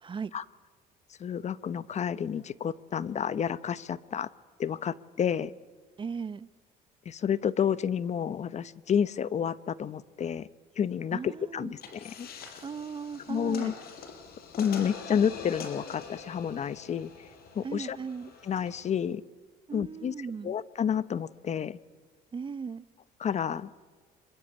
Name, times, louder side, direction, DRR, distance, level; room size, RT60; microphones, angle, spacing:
voice 1, 1.2-4.3 4.6-5.5 7.0-10.5 10.8-12.3 13.3-13.7 14.6-17.3 17.5-18.0 18.4-19.2 19.7-21.8 23.2-23.7, left 8 dB, 45° left, 17 dB, 0.9 m, -30 dB
voice 2, 6.0-6.5 11.1-11.7 12.6-13.7 17.6-18.3 19.7-20.5 22.3-22.8, right 5 dB, 30° right, 17 dB, 0.8 m, -37 dB
sound 1, 11.8-18.9, left 5 dB, 65° left, 5.0 m, -44 dB
25.5 x 22.5 x 9.7 m, 1.5 s
cardioid pair, 110°, 17 cm